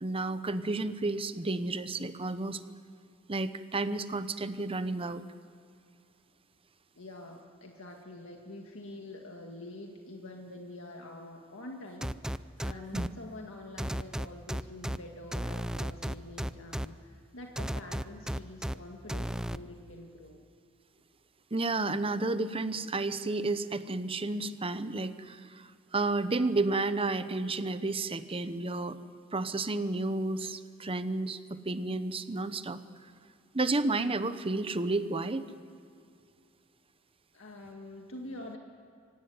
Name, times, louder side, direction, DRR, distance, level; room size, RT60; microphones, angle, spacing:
voice 1, 0.0-2.6 3.3-5.2 12.9-13.1 21.5-29.0 29.3-32.8 33.5-35.4, right 2 dB, 25° right, 12 dB, 0.9 m, -31 dB
voice 2, 7.0-12.2 12.6-20.5 37.3-38.6, left 2 dB, 65° left, 2 dB, 1.9 m, -46 dB
sound 1, 12.0-13.1 13.8-15.0 15.3-16.9 17.6-18.7 19.1-19.6, equal, 5° right, 0.5 m, -33 dB
24.5 x 17.0 x 9.6 m, 2.5 s
head